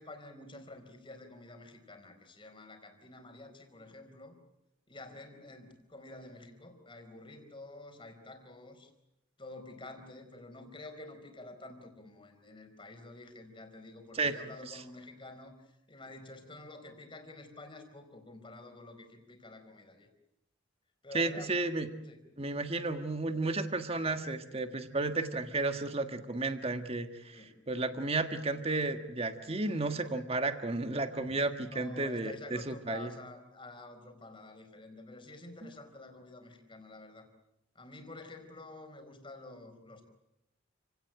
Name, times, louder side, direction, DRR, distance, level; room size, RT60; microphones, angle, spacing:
voice 1, 0.0-4.3 4.9-8.9 9.4-20.1 21.0-21.6 22.0-22.2 27.3-27.6 31.7-37.3 37.7-40.1, left 2 dB, 25° left, 5 dB, 4.5 m, -49 dB
voice 2, 21.1-21.9 22.4-33.1 35.6-35.7, right 3 dB, 30° right, 7 dB, 1.6 m, -33 dB
29.5 x 18.0 x 8.9 m, 0.86 s
head